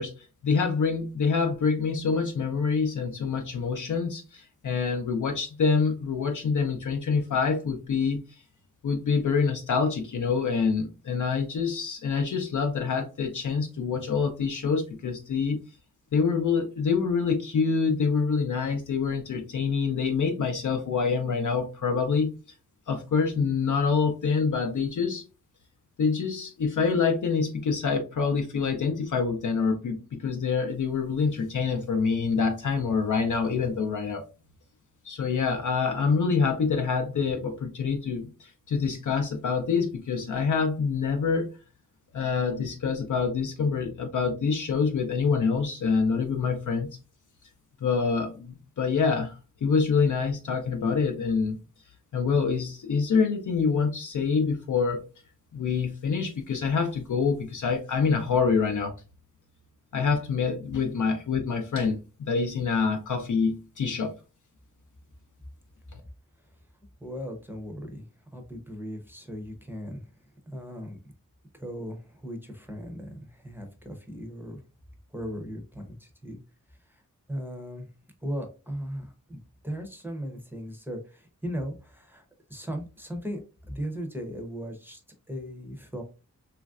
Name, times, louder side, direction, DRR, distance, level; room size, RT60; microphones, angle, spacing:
voice 1, 0.0-8.2 8.8-15.6 16.1-22.3 22.9-25.2 26.0-34.3 35.0-41.5 42.1-46.9 47.8-51.6 52.1-55.0 55.5-58.9 59.9-62.0 62.3-64.1, left 5 dB, 65° left, 0.5 m, -26 dB
voice 2, 67.0-68.1 68.3-71.0 71.5-74.6 75.1-76.4 76.9-77.0 77.3-77.9 78.2-85.0 85.3-86.0, equal, 5° right, 0.6 m, -37 dB
3.0 x 2.5 x 2.3 m
wide cardioid pair, 100°, 33 cm